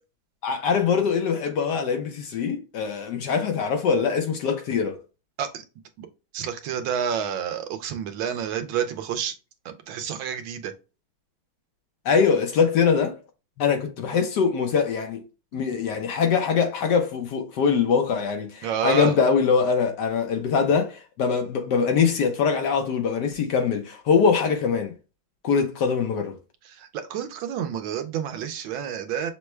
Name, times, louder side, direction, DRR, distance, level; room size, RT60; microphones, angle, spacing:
voice 1, 0.4-5.0 12.0-13.2 13.6-15.2 15.5-24.9 25.4-26.4, left 6 dB, 65° left, 1.1 m, -23 dB
voice 2, 6.3-9.3 9.6-10.7 15.5-15.6 18.6-19.2 26.8-29.3, right 8 dB, 80° right, 1.5 m, -29 dB
6.0 x 2.2 x 3.1 m
omnidirectional pair, 2.2 m